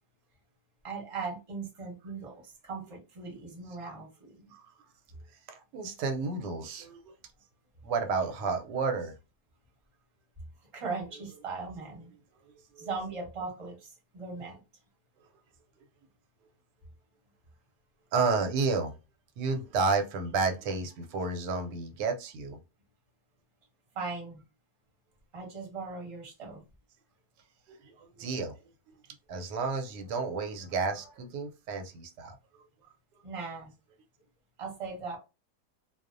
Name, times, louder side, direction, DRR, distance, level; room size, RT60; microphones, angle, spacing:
voice 1, 0.8-4.3 10.7-12.1 12.8-14.6 23.9-24.4 25.3-26.6 33.2-33.7 34.6-35.2, right 4 dB, 25° right, 0.8 m, -39 dB
voice 2, 5.5-7.1 7.8-9.1 12.7-12.9 18.1-18.9 19.4-22.6 27.7-28.6 29.3-32.3, right 4 dB, 85° right, 1.2 m, -31 dB
2.7 x 2.0 x 2.4 m
omnidirectional pair, 1.8 m